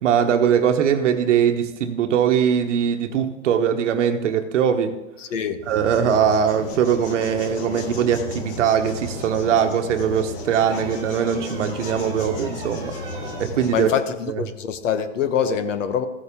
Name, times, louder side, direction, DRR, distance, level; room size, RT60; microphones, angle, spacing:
voice 1, 0.0-5.0 5.7-12.9 13.4-13.9, right 8 dB, 70° right, 1.0 m, -21 dB
voice 2, 5.2-5.6 13.7-16.1, left 8 dB, 75° left, 1.1 m, -24 dB
sound 1, 5.6-14.0, left 3 dB, 45° left, 1.4 m, -34 dB
sound 2, 10.6-13.5 15.2-15.4, right 3 dB, 10° right, 2.1 m, -40 dB
15.0 x 6.7 x 3.6 m
hypercardioid pair, 130°, 38 cm